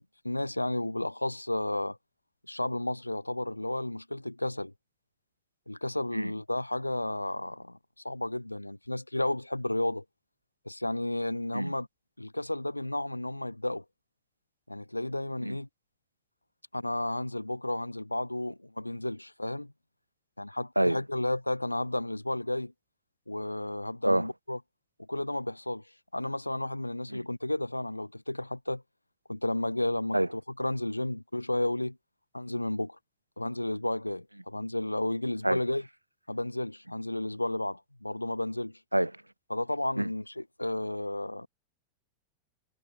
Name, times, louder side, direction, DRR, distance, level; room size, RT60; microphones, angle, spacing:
voice 1, 0.0-2.0 2.5-4.7 5.7-7.8 8.0-10.0 10.7-11.9 12.2-13.8 14.7-15.7 16.7-19.7 20.4-22.7 23.3-24.6 25.0-25.8 26.1-28.8 29.3-32.0 32.3-33.0 33.4-35.9 36.3-38.8 39.5-41.5, left 1 dB, 85° left, 0.3 m, -32 dB
voice 2, 6.1-6.3 11.5-11.7 15.4-15.6 20.8-21.0 24.0-24.3 27.1-27.2 30.1-30.3 35.4-35.6 38.9-39.1 40.0-40.1, right 1 dB, 85° right, 0.3 m, -26 dB
figure-of-eight pair, 90°, 0 cm